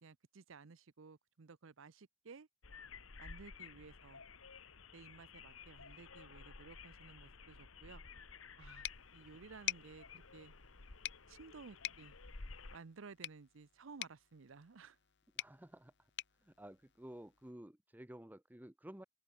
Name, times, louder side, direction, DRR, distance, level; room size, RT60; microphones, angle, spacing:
voice 1, 0.0-2.5 3.2-4.2 4.9-8.0 8.6-10.5 11.3-12.2 12.7-15.0, right 4 dB, 70° right, 0.7 m, -56 dB
sound 1, 2.6-12.8, left 4 dB, 75° left, 1.6 m, -54 dB
sound 2, 8.2-13.1, equal, 40° right, 6.2 m, -81 dB
sound 3, 8.8-17.5, left 13 dB, 55° left, 1.2 m, -48 dB
voice 2, 15.4-15.9 16.4-19.0, right 1 dB, 10° right, 0.7 m, -53 dB
open air
head